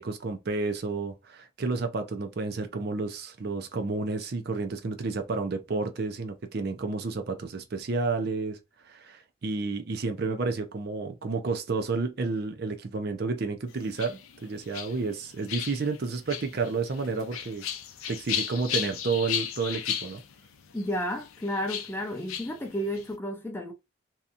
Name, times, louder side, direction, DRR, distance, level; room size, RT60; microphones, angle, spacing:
voice 1, 0.0-8.6 8.9-17.7 18.1-20.2, right 4 dB, 50° right, 0.5 m, -31 dB
sound 1, 13.7-23.1, left 9 dB, 85° left, 0.5 m, -36 dB
voice 2, 20.7-23.7, equal, 10° left, 0.5 m, -32 dB
2.8 x 2.3 x 2.5 m
head